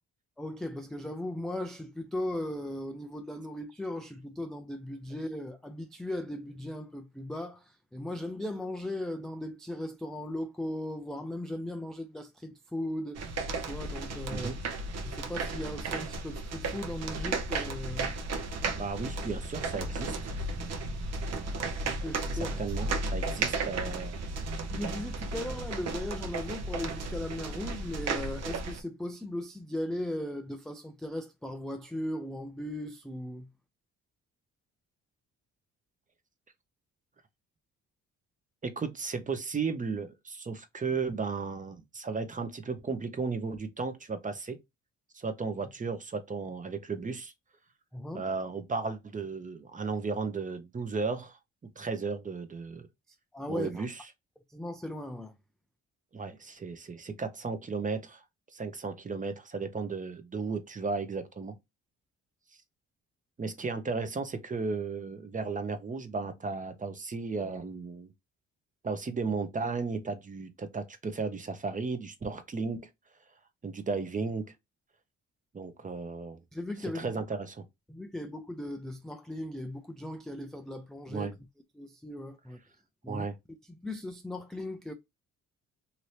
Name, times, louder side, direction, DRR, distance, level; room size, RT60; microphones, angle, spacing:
voice 1, 0.4-13.2 13.7-14.5 15.0-18.1 21.8-22.6 24.7-33.5 47.9-48.3 53.3-53.9 54.5-55.3 76.5-77.1 77.9-81.3 81.8-82.6 83.0-83.3 83.8-84.9, left 1 dB, ahead, 0.3 m, -37 dB
sound 1, 13.2-28.8, right 3 dB, 60° right, 0.8 m, -34 dB
voice 2, 18.8-20.3 22.3-24.2 38.6-44.6 45.1-47.3 48.1-51.4 51.8-52.9 53.5-53.9 56.1-58.2 58.5-61.6 63.4-68.1 68.8-72.9 73.6-74.5 75.5-76.4 76.9-77.6 81.1-81.4 83.1-83.4, right 4 dB, 25° right, 0.7 m, -34 dB
2.8 x 2.7 x 3.1 m
cardioid pair, 90°, 30 cm